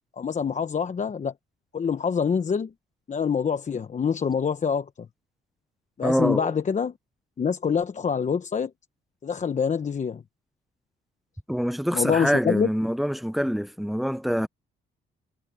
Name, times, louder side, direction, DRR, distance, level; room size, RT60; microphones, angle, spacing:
voice 1, 0.2-1.3 1.7-2.7 3.1-4.9 6.0-6.9 7.4-8.7 9.2-10.2 11.9-12.7, left 6 dB, 35° left, 1.1 m, -25 dB
voice 2, 6.0-6.5 11.5-14.5, equal, ahead, 0.8 m, -25 dB
cardioid pair, 90°, 20 cm